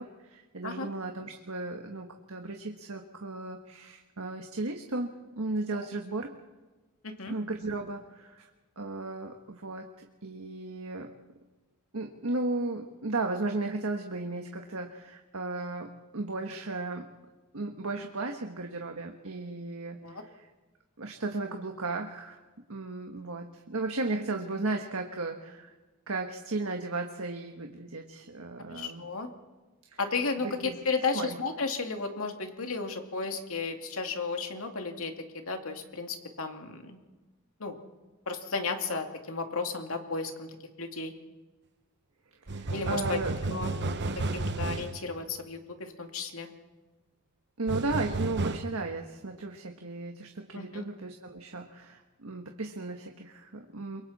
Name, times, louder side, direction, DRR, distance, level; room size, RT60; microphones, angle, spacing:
voice 1, 0.0-6.3 7.3-8.5 8.8-11.1 11.9-17.1 17.5-20.5 21.0-22.4 22.7-25.7 26.1-29.0 29.9-30.0 30.4-30.7 31.1-31.4 42.5-43.3 47.6-54.0, right 2 dB, 70° right, 3 dB, 1.6 m, -35 dB
voice 2, 7.0-7.3 20.0-20.2 28.7-29.3 30.0-37.0 37.6-37.7 38.3-40.5 40.8-41.1 42.7-43.2 43.5-43.7 44.3-46.5 50.5-50.9, left 4 dB, 70° left, 4 dB, 2.5 m, -34 dB
sound 1, 42.5-45.0 47.7-48.6, right 2 dB, 55° right, 1.1 m, -32 dB
29.0 x 23.5 x 4.3 m, 1.2 s
head